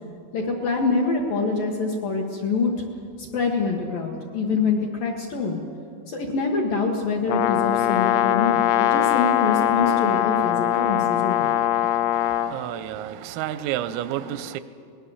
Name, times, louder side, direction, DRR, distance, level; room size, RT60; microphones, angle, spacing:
voice 1, 0.3-2.7 3.2-5.6 6.1-11.5, left 4 dB, 65° left, 0 dB, 2.3 m, -25 dB
Brass instrument, 7.3-12.5, left 11 dB, 85° left, 2.4 m, -21 dB
voice 2, 11.4-14.6, right 12 dB, 85° right, 13 dB, 3.3 m, -31 dB
23.5 x 19.5 x 7.1 m, 2.5 s
omnidirectional pair, 5.9 m